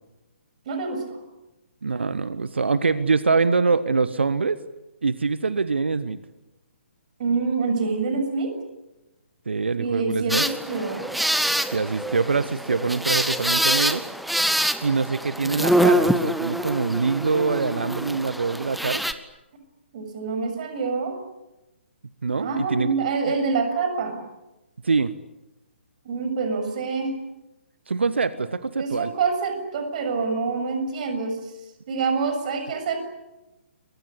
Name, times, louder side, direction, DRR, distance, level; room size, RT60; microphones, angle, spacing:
voice 1, 0.7-1.2 7.2-8.5 9.8-11.1 19.9-21.2 22.4-24.2 26.1-27.1 28.8-31.4 31.9-33.0, right 4 dB, 40° right, 7 dB, 7.0 m, -26 dB
voice 2, 1.8-4.6 5.0-6.2 9.5-10.4 11.7-14.0 14.8-19.0 22.2-22.9 24.8-25.1 27.9-29.1, right 4 dB, 65° right, 14 dB, 1.3 m, -24 dB
sound 1, 10.3-19.1, right 1 dB, ahead, 1.1 m, -25 dB
30.0 x 23.5 x 8.5 m, 0.99 s
figure-of-eight pair, 135°, 7 cm